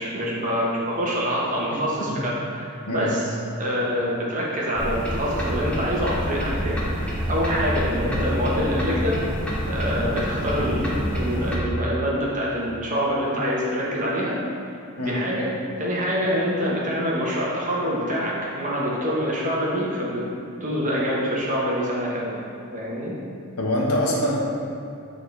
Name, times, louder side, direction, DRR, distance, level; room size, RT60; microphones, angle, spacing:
voice 1, 0.0-9.2 9.7-14.4 15.0-15.5 15.8-20.2 20.6-22.4 22.7-23.1, equal, 35° right, -5 dB, 1.1 m, -26 dB
sound 1, 4.7-11.6, equal, 5° left, 0.9 m, -27 dB
voice 2, 23.6-24.3, left 1 dB, 85° left, -3 dB, 1.2 m, -24 dB
9.2 x 3.9 x 3.4 m, 2.5 s
head